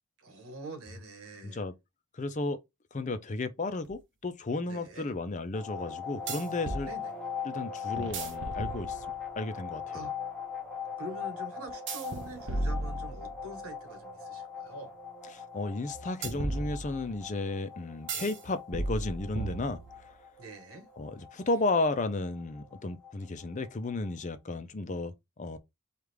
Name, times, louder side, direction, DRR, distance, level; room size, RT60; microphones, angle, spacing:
voice 1, 0.2-1.6 4.6-5.1 6.8-7.1 9.9-10.1 11.0-14.9 20.4-20.9, right 1 dB, 75° right, 1.3 m, -45 dB
voice 2, 1.4-1.7 2.1-2.6 2.9-6.9 7.4-9.1 9.4-10.1 15.3-20.2 21.0-25.6, left 2 dB, 35° left, 0.5 m, -33 dB
sound 1, 3.8-3.9 6.3-6.9 8.0-9.3 11.9-13.6 16.2-17.2 18.1-18.4 18.7-20.1, right 2 dB, 55° right, 0.9 m, -35 dB
sound 2, 5.5-24.1, left 6 dB, 5° left, 1.0 m, -41 dB
4.8 x 2.4 x 3.3 m
head